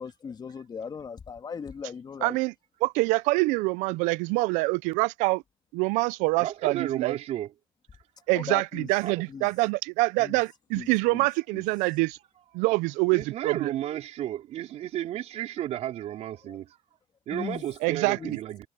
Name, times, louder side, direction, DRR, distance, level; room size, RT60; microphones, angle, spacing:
voice 1, 0.0-2.4 8.3-8.9 9.3-9.5 10.2-10.4 10.7-11.2 11.5-11.6 16.5-16.6 17.3-17.7 18.2-18.4, left 6 dB, 30° left, 2.3 m, -38 dB
voice 2, 2.2-2.5 2.8-5.4 5.7-7.2 8.3-12.2 12.5-13.7 17.8-18.4, right 23 dB, 75° right, 0.7 m, -25 dB
voice 3, 6.4-7.5 9.0-9.2 13.1-16.8 17.3-18.7, right 12 dB, 55° right, 3.4 m, -33 dB
supercardioid pair, 90°, 13 cm